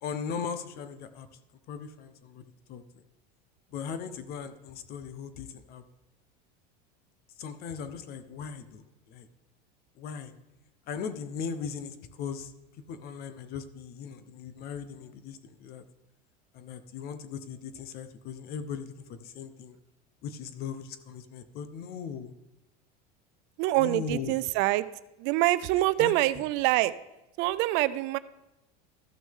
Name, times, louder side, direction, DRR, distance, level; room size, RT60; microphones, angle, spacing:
voice 1, 0.0-1.3 1.7-2.4 2.7-3.0 3.7-5.8 7.4-9.3 10.0-10.3 10.9-12.5 12.9-15.8 16.5-19.7 20.2-22.3 23.8-24.4 26.0-26.1, left 6 dB, 50° left, 11 dB, 0.9 m, -38 dB
voice 2, 23.6-24.9 25.2-26.9 27.4-28.2, right 17 dB, 60° right, 15 dB, 0.5 m, -25 dB
14.0 x 6.1 x 3.6 m, 0.97 s
supercardioid pair, 115°, 21 cm